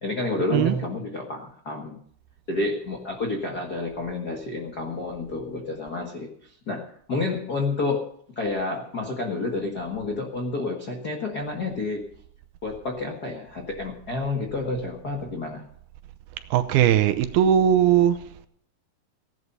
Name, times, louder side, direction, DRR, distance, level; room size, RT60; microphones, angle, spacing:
voice 1, 0.0-2.0 2.5-12.1 12.6-15.7, left 2 dB, 65° left, 0.9 m, -30 dB
voice 2, 16.5-18.2, right 10 dB, 75° right, 2.6 m, -19 dB
16.5 x 11.5 x 5.4 m
omnidirectional pair, 4.6 m